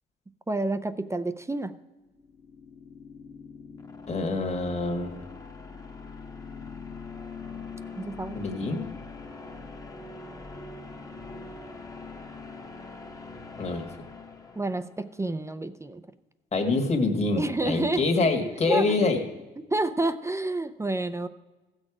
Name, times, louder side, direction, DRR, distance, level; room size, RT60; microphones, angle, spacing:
voice 1, 0.5-1.7 8.0-8.4 14.6-16.0 17.4-18.0 18.4-18.8 19.7-21.3, right 2 dB, 15° right, 11 dB, 0.5 m, -29 dB
sound 1, 2.1-15.1, left 4 dB, 15° left, 1.1 m, -42 dB
voice 2, 4.1-5.2 8.3-8.9 13.5-13.9 16.5-19.2, left 3 dB, 35° left, 3 dB, 1.6 m, -26 dB
15.5 x 6.5 x 4.8 m, 1.2 s
cardioid pair, 90°, 20 cm